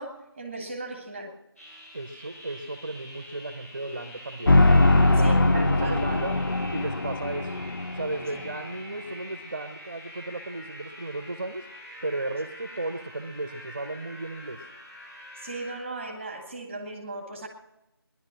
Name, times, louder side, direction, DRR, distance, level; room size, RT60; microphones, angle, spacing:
voice 1, 0.0-1.3 5.1-6.4 8.3-8.4 15.3-17.5, right 2 dB, 10° right, 3 dB, 1.5 m, -37 dB
sound 1, 1.6-15.8, left 1 dB, 35° left, 7.7 m, -45 dB
voice 2, 1.9-4.6 5.0-6.4 6.7-7.6 7.9-11.7 12.0-14.6, right 2 dB, 30° right, 8 dB, 0.8 m, -35 dB
sound 2, 4.5-8.5, left 2 dB, 55° left, 0.7 m, -21 dB
18.0 x 11.0 x 6.0 m, 0.91 s
figure-of-eight pair, 170°, 13 cm